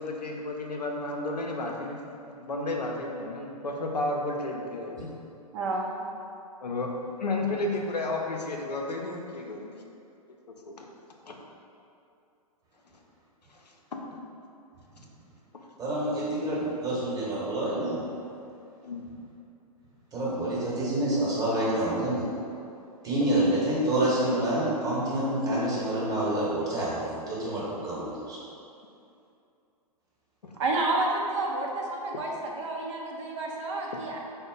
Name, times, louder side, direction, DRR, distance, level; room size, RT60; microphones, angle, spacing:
voice 1, 0.0-2.0 2.3-5.1 6.6-6.9 7.2-9.8 10.7-10.9 11.3-11.4 18.8-19.0 30.4-30.6, left 2 dB, 90° left, 1 dB, 0.5 m, -32 dB
voice 2, 5.5-6.1 30.6-34.2, right 2 dB, 50° right, -1 dB, 0.6 m, -30 dB
voice 3, 15.8-18.0 20.1-22.3 23.0-28.4, right 1 dB, 15° right, -8 dB, 1.1 m, -27 dB
4.2 x 2.1 x 3.8 m, 2.6 s
figure-of-eight pair, 115°, 20 cm